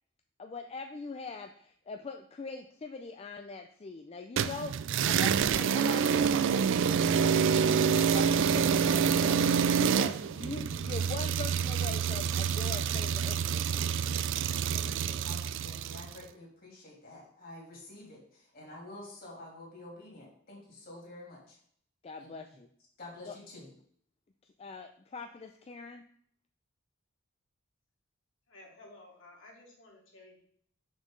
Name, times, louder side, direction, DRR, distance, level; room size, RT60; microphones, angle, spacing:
voice 1, 0.4-7.4 7.6-9.4 9.7-14.0 22.0-22.7 23.3-23.4 24.6-26.0, left 4 dB, 30° left, 6 dB, 0.4 m, -42 dB
sound 1, 4.4-16.1, right 7 dB, 60° right, 0.3 m, -27 dB
voice 2, 14.7-21.6 22.2-22.3 23.0-23.7, left 2 dB, 45° left, -3 dB, 3.1 m, -49 dB
voice 3, 28.5-30.4, left 2 dB, 70° left, -2 dB, 2.4 m, -54 dB
6.4 x 6.3 x 3.8 m, 0.62 s
head